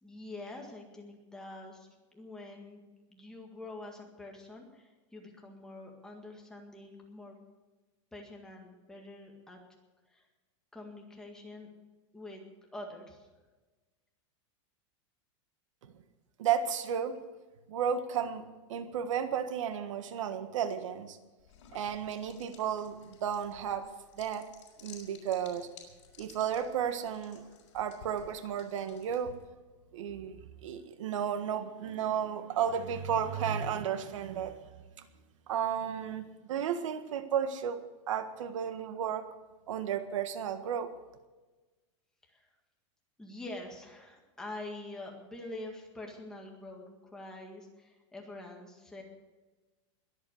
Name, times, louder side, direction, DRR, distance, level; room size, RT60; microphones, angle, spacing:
voice 1, 0.0-7.4 8.1-9.6 10.1-10.3 10.7-11.7 12.1-12.4 12.7-13.3 42.2-42.5 43.2-49.0, left 2 dB, 5° left, 0 dB, 1.9 m, -46 dB
voice 2, 16.4-17.2 17.7-18.4 18.7-21.2 21.7-23.9 24.2-24.5 24.8-25.7 26.2-27.4 27.7-29.4 29.9-34.6 35.0-35.1 35.5-37.8 38.1-39.3 39.7-40.9, right 8 dB, 80° right, 9 dB, 1.5 m, -33 dB
sound 1, 21.4-29.5, left 7 dB, 65° left, 4.7 m, -56 dB
21.5 x 8.3 x 6.5 m, 1.2 s
supercardioid pair, 180°, 16 cm